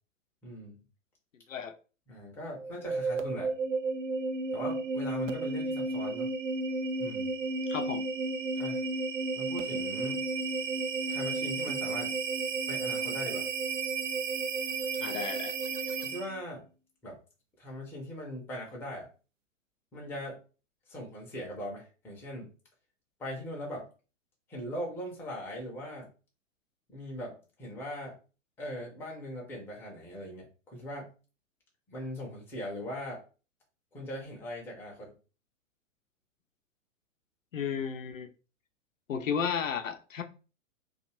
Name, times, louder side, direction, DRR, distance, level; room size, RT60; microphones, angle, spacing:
voice 1, 0.4-0.8 2.1-3.6 4.5-6.3 7.0-7.3 8.5-8.8 9.4-10.3 11.1-12.1 12.7-13.5 16.0-16.7 17.0-17.2 17.6-19.1 19.9-20.4 20.9-22.5 23.2-23.9 24.5-26.1 26.9-28.2 28.6-31.1 31.9-33.2 33.9-35.2, equal, 5° left, 0.5 m, -40 dB
sound 1, 2.5-16.4, right 3 dB, 70° right, 0.5 m, -33 dB
voice 2, 7.7-8.1 15.0-15.5 37.5-38.3 39.1-40.2, left 7 dB, 75° left, 0.6 m, -33 dB
2.4 x 2.3 x 2.9 m
figure-of-eight pair, 105°, 39 cm